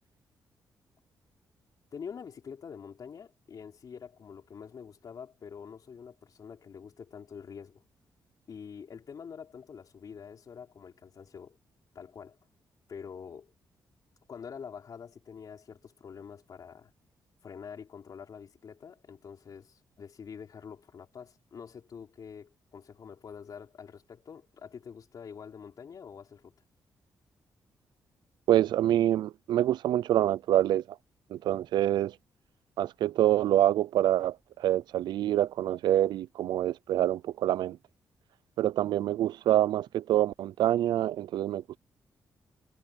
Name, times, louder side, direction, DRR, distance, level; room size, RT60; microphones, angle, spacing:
voice 1, 1.9-7.8 8.5-11.6 11.9-12.4 12.9-13.5 14.3-16.9 17.4-26.5, left 6 dB, 55° left, 3.7 m, -46 dB
voice 2, 28.5-30.8 31.3-32.1 32.8-37.8 38.6-41.8, right 12 dB, 90° right, 0.4 m, -26 dB
cardioid pair, 95°, 7 cm